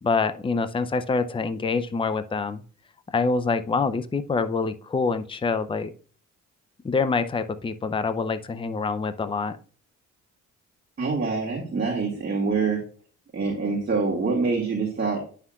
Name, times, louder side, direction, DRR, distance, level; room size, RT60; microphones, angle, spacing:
voice 1, 0.0-2.6 3.1-5.9 6.8-9.5, left 4 dB, 15° left, 11 dB, 0.5 m, -26 dB
voice 2, 11.0-12.8 13.3-15.2, right 4 dB, 35° right, -2 dB, 1.9 m, -25 dB
9.5 x 5.8 x 2.4 m, 0.40 s
cardioid pair, 105°, 31 cm